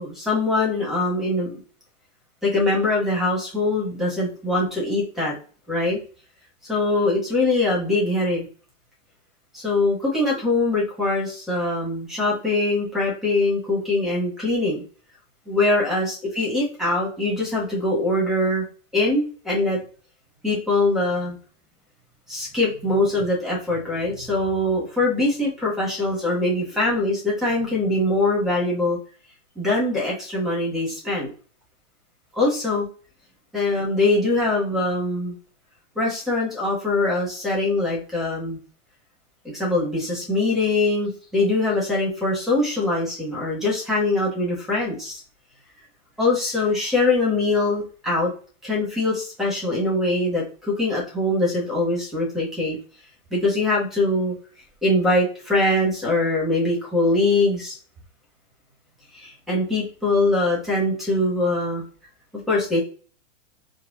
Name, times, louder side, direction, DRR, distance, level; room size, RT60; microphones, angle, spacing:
voice 1, 0.0-1.5 2.4-5.3 5.7-6.0 6.7-8.4 9.5-14.8 15.5-18.6 18.9-19.8 20.4-21.4 22.3-29.0 29.6-31.3 32.3-32.8 33.5-35.3 35.9-38.6 39.5-45.2 46.2-48.3 48.6-52.8 53.3-54.3 54.8-57.8 59.1-61.8 62.5-62.8, left 2 dB, ahead, -4 dB, 1.4 m, -22 dB
4.7 x 2.3 x 2.4 m, 0.41 s
hypercardioid pair, 140°, 38 cm